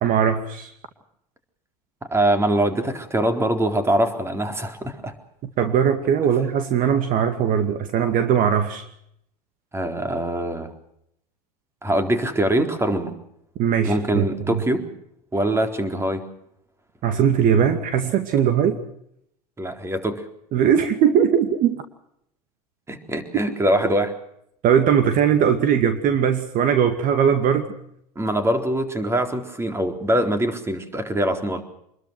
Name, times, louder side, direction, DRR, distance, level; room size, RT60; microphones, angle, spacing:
voice 1, 0.0-0.7 5.6-8.8 13.6-14.6 17.0-18.8 20.5-21.8 24.6-27.7, right 8 dB, 45° right, 8 dB, 2.3 m, -20 dB
voice 2, 2.1-5.1 9.7-10.7 11.8-13.2 13.8-14.9 15.3-16.3 19.6-20.2 22.9-24.1 28.2-31.6, right 1 dB, 15° right, 7 dB, 4.0 m, -23 dB
26.5 x 21.5 x 6.1 m, 0.74 s
hypercardioid pair, 85°, 20 cm